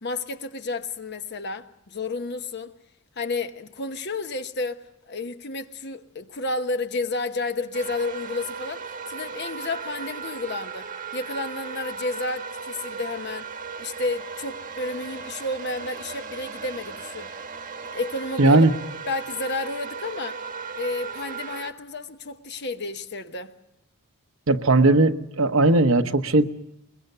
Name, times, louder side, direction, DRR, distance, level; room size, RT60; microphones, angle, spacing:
voice 1, 0.0-2.7 3.2-10.9 11.1-13.5 13.8-17.3 17.8-18.6 19.1-20.4 20.7-23.5, left 3 dB, 50° left, 1.1 m, -31 dB
sound 1, 7.7-21.7, right 5 dB, 35° right, 1.2 m, -36 dB
voice 2, 18.4-18.7 24.5-26.4, right 2 dB, 60° right, 1.0 m, -18 dB
22.0 x 22.0 x 6.7 m
head